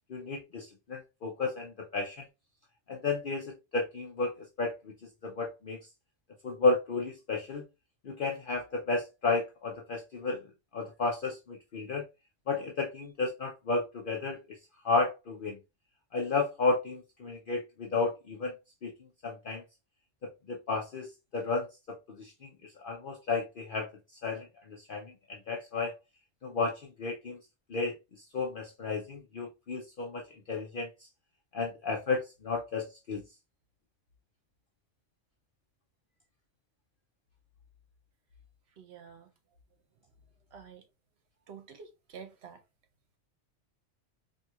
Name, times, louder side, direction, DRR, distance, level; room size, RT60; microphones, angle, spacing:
voice 1, 0.1-2.3 2.9-4.8 5.2-5.9 6.4-7.6 8.0-10.4 10.7-12.0 12.5-14.6 14.8-15.6 16.1-18.5 18.8-18.9 19.2-19.6 20.2-22.5 22.8-23.9 24.2-26.0 26.4-27.4 27.7-28.0 28.3-30.9 31.5-33.2, left 3 dB, 50° left, 0.8 m, -32 dB
voice 2, 38.8-39.3 40.5-40.8 41.5-42.6, right 6 dB, 65° right, 1.0 m, -48 dB
4.3 x 2.7 x 2.3 m
omnidirectional pair, 1.2 m